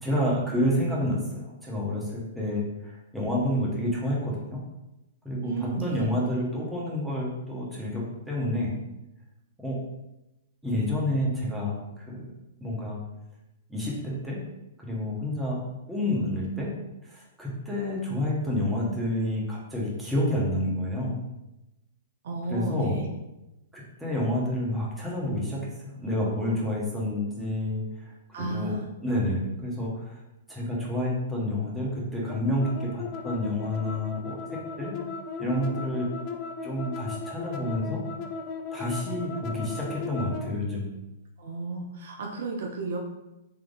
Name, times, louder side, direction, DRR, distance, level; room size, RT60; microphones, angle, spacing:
voice 1, 0.0-2.6 3.1-4.6 5.2-8.8 9.6-9.8 10.6-12.3 12.6-13.0 13.7-14.4 14.8-15.6 15.9-16.7 17.1-21.2 22.5-23.0 23.7-28.1 28.4-28.7 29.0-30.2 30.5-35.0 35.4-36.1 36.6-38.0 38.7-40.9, left 1 dB, 5° right, -5 dB, 1.1 m, -29 dB
voice 2, 5.4-6.0 22.2-23.1 28.3-28.9 41.4-43.0, right 3 dB, 55° right, 1 dB, 0.5 m, -33 dB
sound 1, 32.3-40.5, left 4 dB, 35° left, 0.4 m, -37 dB
3.6 x 3.3 x 2.5 m, 0.94 s
figure-of-eight pair, 110°, 0 cm